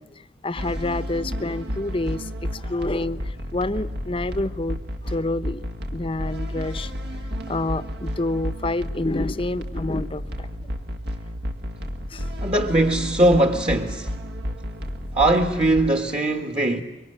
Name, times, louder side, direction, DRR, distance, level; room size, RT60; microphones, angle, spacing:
voice 1, 0.0-5.6 5.9-6.9 7.5-10.5 12.1-12.3, left 2 dB, 30° left, 0.9 m, -28 dB
sound 1, 0.6-15.9, equal, 65° right, 1.9 m, -32 dB
voice 2, 12.4-14.1 15.1-16.8, right 1 dB, 30° right, 1.5 m, -20 dB
25.0 x 24.0 x 9.8 m
head